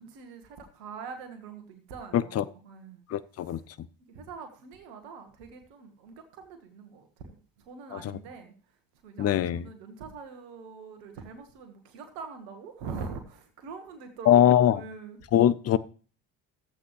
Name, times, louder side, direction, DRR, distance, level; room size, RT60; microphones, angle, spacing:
voice 1, 0.0-3.0 3.4-3.6 4.1-8.5 9.0-15.2, right 5 dB, 75° right, 1.6 m, -43 dB
voice 2, 2.1-2.4 3.1-3.6 7.9-8.1 9.2-9.6 14.3-14.8 15.3-15.8, left 11 dB, 30° left, 0.5 m, -22 dB
14.5 x 7.9 x 3.1 m
hypercardioid pair, 55°, 49 cm